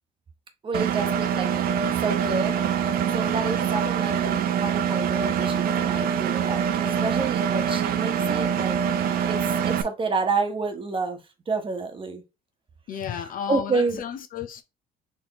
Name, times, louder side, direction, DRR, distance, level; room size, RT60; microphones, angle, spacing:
voice 1, 0.6-1.5 1.9-2.6 3.1-8.8 9.3-12.2 13.2-14.0, right 4 dB, 30° right, 1.1 m, -29 dB
Engine, 0.7-9.8, right 8 dB, 65° right, 0.6 m, -24 dB
voice 2, 12.9-14.6, left 8 dB, 55° left, 0.8 m, -32 dB
4.5 x 3.6 x 3.0 m
cardioid pair, 110°, 17 cm